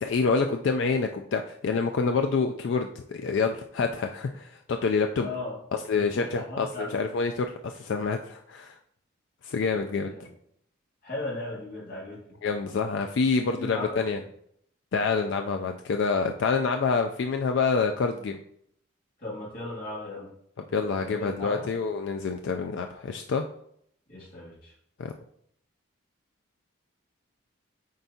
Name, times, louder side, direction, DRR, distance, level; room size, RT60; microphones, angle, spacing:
voice 1, 0.0-5.3 5.9-8.8 9.4-10.1 12.4-14.2 14.9-18.4 20.7-23.4 25.0-25.1, left 4 dB, 65° left, 5 dB, 0.3 m, -27 dB
voice 2, 5.2-5.6 5.9-7.0 10.0-10.3 11.0-12.2 13.6-14.1 19.2-20.3 21.0-21.7 24.1-24.7, left 2 dB, 45° left, -5 dB, 2.4 m, -37 dB
7.6 x 4.6 x 2.8 m, 0.70 s
head